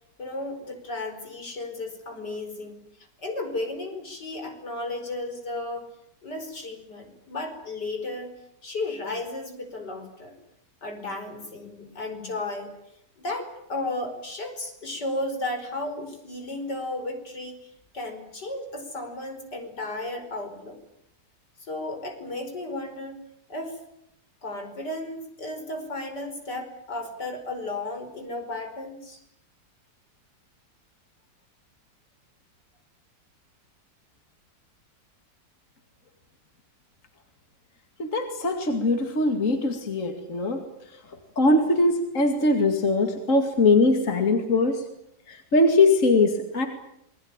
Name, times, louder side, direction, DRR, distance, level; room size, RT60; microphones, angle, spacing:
voice 1, 0.2-2.8 3.2-5.9 6.2-8.3 8.6-10.4 10.8-12.7 13.2-20.8 21.6-23.2 23.5-23.8 24.4-29.2, left 2 dB, 75° left, 5 dB, 5.7 m, -34 dB
voice 2, 38.0-40.6 40.9-41.0 41.4-44.8 45.3-46.7, left 2 dB, 45° left, 5 dB, 2.7 m, -21 dB
27.5 x 21.5 x 8.9 m, 0.77 s
omnidirectional pair, 1.8 m